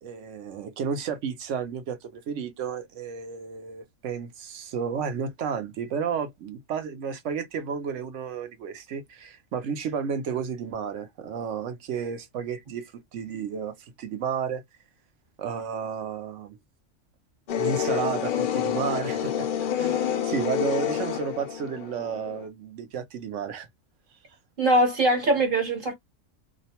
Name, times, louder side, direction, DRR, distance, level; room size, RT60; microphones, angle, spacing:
voice 1, 0.0-14.6 15.4-16.6 17.5-23.7, right 6 dB, 65° right, 1.0 m, -32 dB
sound 1, 17.5-22.4, left 9 dB, 70° left, 0.5 m, -28 dB
voice 2, 24.6-25.9, right 1 dB, 45° right, 1.1 m, -22 dB
2.7 x 2.1 x 2.8 m
omnidirectional pair, 1.4 m